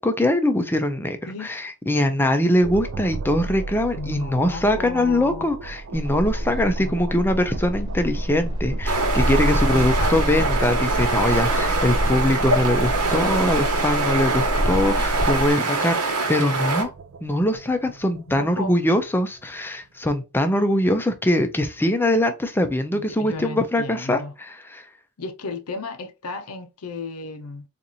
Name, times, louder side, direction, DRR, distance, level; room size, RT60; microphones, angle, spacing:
voice 1, 0.0-16.9 17.2-24.9, left 1 dB, 10° left, 0.5 m, -22 dB
sound 1, 2.6-19.9, right 4 dB, 60° right, 0.4 m, -38 dB
voice 2, 4.0-5.5 6.8-7.0 9.7-10.4 18.1-18.8 23.0-24.3 25.2-27.6, left 3 dB, 80° left, 0.7 m, -34 dB
sound 2, 5.9-15.5, equal, 20° right, 1.1 m, -26 dB
sound 3, 8.9-16.8, right 3 dB, 80° right, 1.2 m, -24 dB
4.0 x 2.5 x 2.8 m
head